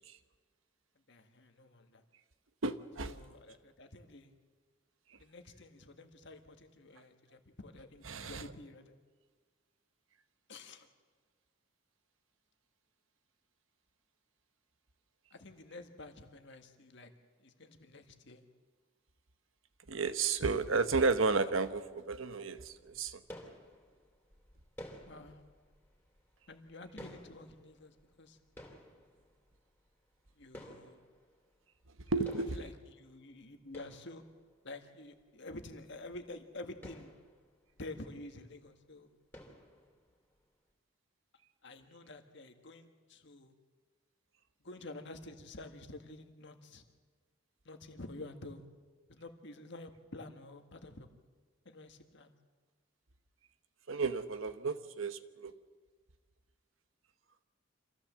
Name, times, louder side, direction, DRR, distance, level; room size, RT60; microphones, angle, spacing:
voice 1, 1.1-2.0 3.0-4.3 5.2-8.9 10.5-10.9 15.3-18.5 25.1-25.4 26.5-28.4 30.4-31.0 32.0-34.2 34.6-37.1 37.7-39.1 41.6-43.5 44.6-46.8 47.7-48.6 49.1-51.1 51.7-52.3, left 2 dB, 65° left, 6 dB, 1.7 m, -49 dB
voice 2, 2.6-3.1 8.1-8.4 19.9-23.2 32.1-32.6 53.9-55.5, right 4 dB, 85° right, 11 dB, 1.0 m, -32 dB
sound 1, 22.5-32.0 32.3-34.7 35.2-35.3 35.6-35.7 35.9-36.1 36.5-38.4 38.6-38.9 39.3-40.3, equal, 10° left, 3.2 m, -54 dB
26.0 x 15.0 x 7.5 m, 1.4 s
head